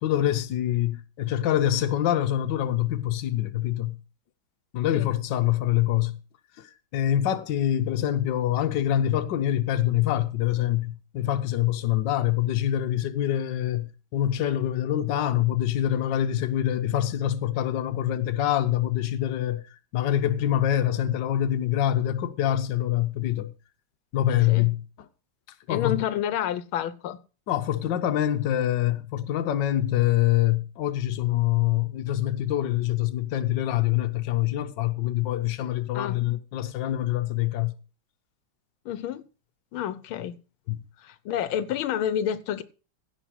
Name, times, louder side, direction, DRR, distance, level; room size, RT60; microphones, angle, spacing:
voice 1, 0.0-4.0 4.7-6.2 6.6-6.7 6.9-19.6 19.9-23.5 24.1-24.8 25.7-26.1 27.5-37.7 40.7-40.8, left 12 dB, 65° left, 1.5 m, -25 dB
voice 2, 25.7-27.2 35.9-36.2 38.8-39.3 39.7-40.4 41.0-42.6, left 10 dB, 85° left, 1.6 m, -29 dB
16.0 x 5.5 x 6.3 m
omnidirectional pair, 2.2 m